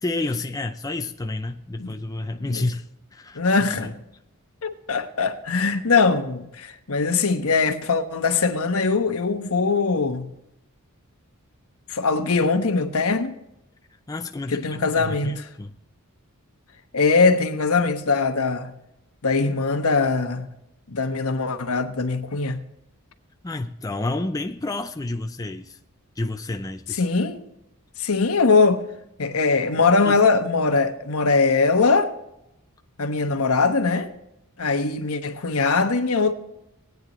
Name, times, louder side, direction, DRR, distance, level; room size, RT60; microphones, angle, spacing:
voice 1, 0.0-2.8 3.1-3.4 3.8-3.9 14.1-15.7 23.4-25.8 26.2-27.0 30.1-30.2, left 2 dB, 15° left, 0.4 m, -30 dB
voice 2, 3.3-3.9 4.6-10.3 11.9-13.4 14.5-15.5 16.9-18.7 19.2-20.5 20.9-22.6 27.0-27.4 28.0-28.8 29.2-32.1 33.0-34.1 34.6-36.3, left 4 dB, 75° left, 1.2 m, -21 dB
19.0 x 9.3 x 3.1 m
head